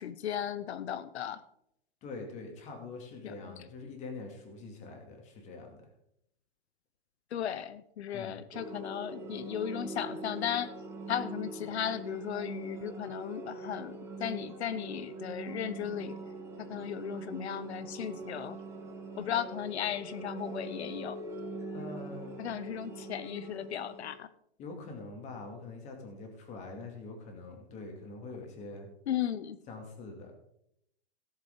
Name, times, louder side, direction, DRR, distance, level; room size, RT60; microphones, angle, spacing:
voice 1, 0.0-1.4 3.2-3.6 7.3-10.7 11.1-13.9 14.2-16.2 16.6-18.6 19.2-21.2 22.4-24.3 29.1-29.6, left 9 dB, 85° left, 14 dB, 0.8 m, -36 dB
voice 2, 2.0-5.9 8.1-8.3 21.7-22.4 24.6-28.9 29.7-30.3, left 3 dB, 20° left, 3 dB, 2.4 m, -44 dB
sound 1, 8.5-24.2, right 2 dB, 10° right, 1.5 m, -43 dB
17.5 x 7.2 x 3.8 m, 0.75 s
hypercardioid pair, 160°, 32 cm